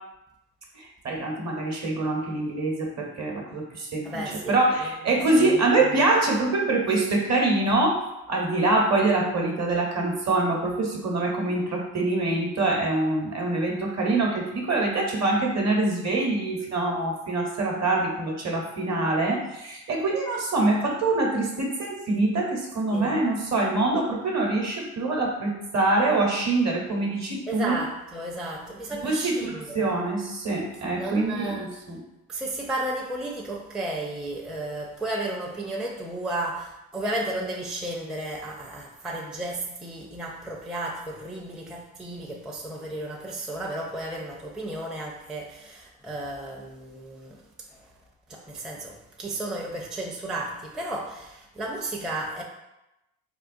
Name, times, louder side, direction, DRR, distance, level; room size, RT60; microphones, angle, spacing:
voice 1, 0.7-8.0 8.3-27.8 29.0-32.0, right 2 dB, 45° right, 0 dB, 0.9 m, -25 dB
voice 2, 4.0-5.7 6.0-6.1 22.9-23.2 27.5-29.9 30.9-31.8 32.3-47.9 48.3-52.4, right 1 dB, ahead, -2 dB, 0.4 m, -33 dB
3.6 x 2.2 x 2.6 m, 0.93 s
supercardioid pair, 50°, 38 cm